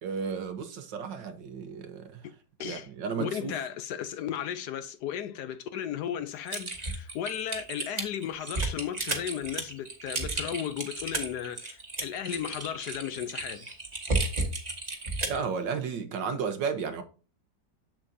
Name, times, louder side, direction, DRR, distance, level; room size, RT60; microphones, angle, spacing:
voice 1, 0.0-2.2 2.6-3.6 15.3-17.0, right 6 dB, 75° right, 1.7 m, -33 dB
voice 2, 3.2-13.7, left 9 dB, 70° left, 1.1 m, -35 dB
Typing, 6.5-15.4, right 2 dB, 25° right, 1.3 m, -33 dB
7.5 x 7.3 x 2.7 m
omnidirectional pair, 2.0 m